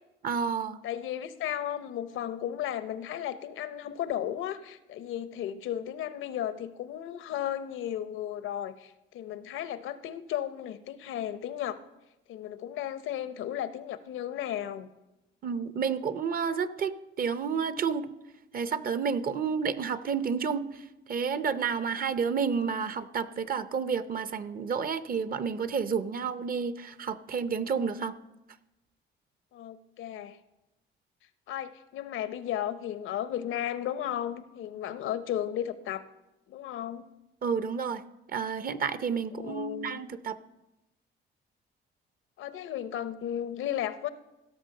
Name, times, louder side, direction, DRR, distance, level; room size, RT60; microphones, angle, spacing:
voice 1, 0.2-0.8 15.4-18.1 18.5-28.1 37.4-38.0 38.3-40.4, right 6 dB, 45° right, 13 dB, 0.7 m, -30 dB
voice 2, 0.8-11.8 12.3-14.9 29.5-30.4 31.5-36.0 36.5-37.1 39.3-40.0 42.4-44.1, left 11 dB, 85° left, 13 dB, 0.8 m, -34 dB
16.0 x 6.3 x 6.6 m, 0.97 s
cardioid pair, 90°, 20 cm